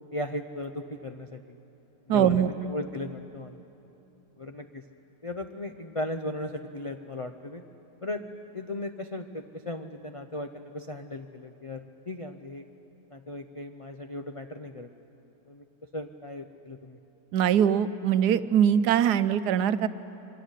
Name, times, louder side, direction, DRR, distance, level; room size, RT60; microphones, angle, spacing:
voice 1, 0.1-1.4 2.1-3.6 4.4-4.8 5.2-7.6 8.0-8.2 8.5-12.7 13.1-14.9 15.5-15.6 15.9-17.0, left 2 dB, 60° left, 6 dB, 0.3 m, -37 dB
voice 2, 2.1-2.5 17.3-19.9, right 9 dB, 85° right, 13 dB, 1.3 m, -22 dB
24.5 x 16.5 x 9.9 m, 3.0 s
omnidirectional pair, 1.7 m